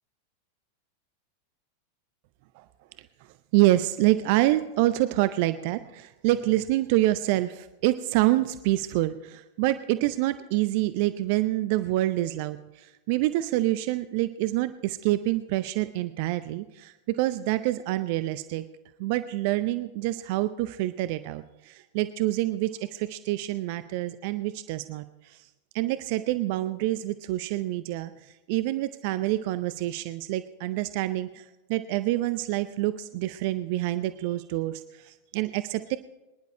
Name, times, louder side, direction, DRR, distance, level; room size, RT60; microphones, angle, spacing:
voice 1, 3.5-18.6 19.0-25.4 25.7-31.4 31.7-36.0, right 16 dB, 45° right, 13 dB, 0.5 m, -27 dB
24.0 x 10.5 x 4.3 m, 1.0 s
figure-of-eight pair, 90°, 0 cm